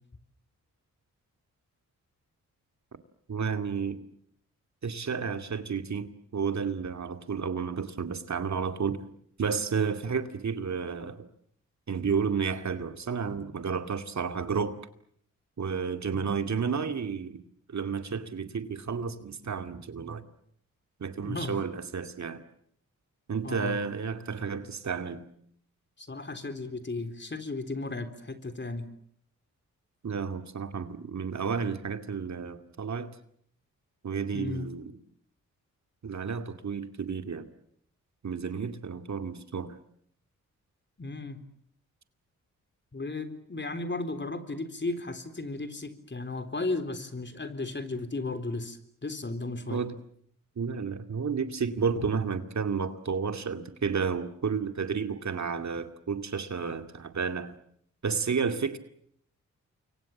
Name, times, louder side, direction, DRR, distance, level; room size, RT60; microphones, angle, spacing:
voice 1, 3.3-4.0 4.8-9.0 9.4-11.3 11.9-14.8 15.6-17.4 17.7-20.3 21.0-22.4 23.3-25.3 30.0-33.1 34.0-34.9 36.0-37.5 38.2-39.8 49.7-49.9 50.6-57.5 58.0-58.8, right 6 dB, 55° right, 8 dB, 2.4 m, -31 dB
voice 2, 21.3-21.6 23.4-23.8 26.0-28.9 34.3-34.7 41.0-41.4 42.9-48.8 49.0-49.8, left 2 dB, 35° left, 9 dB, 4.0 m, -35 dB
29.0 x 23.5 x 7.3 m, 0.66 s
cardioid pair, 55°, 34 cm